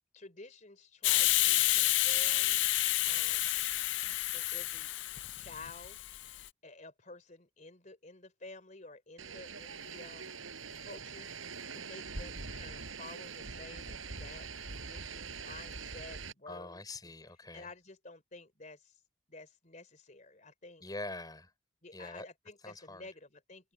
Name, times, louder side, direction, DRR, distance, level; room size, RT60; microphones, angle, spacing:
voice 1, 0.1-2.7 3.0-3.5 4.0-4.9 5.3-6.0 6.6-10.4 10.8-11.3 11.7-17.1 17.5-19.0 19.3-20.8 21.8-23.7, left 3 dB, 40° left, 3.8 m, -51 dB
Hiss, 1.0-6.4, left 17 dB, 60° left, 0.4 m, -29 dB
sound 1, 9.2-16.3, right 4 dB, 85° right, 4.6 m, -43 dB
voice 2, 16.4-17.7 20.8-21.5 21.9-22.3 22.6-23.1, left 2 dB, 20° left, 4.8 m, -44 dB
open air
head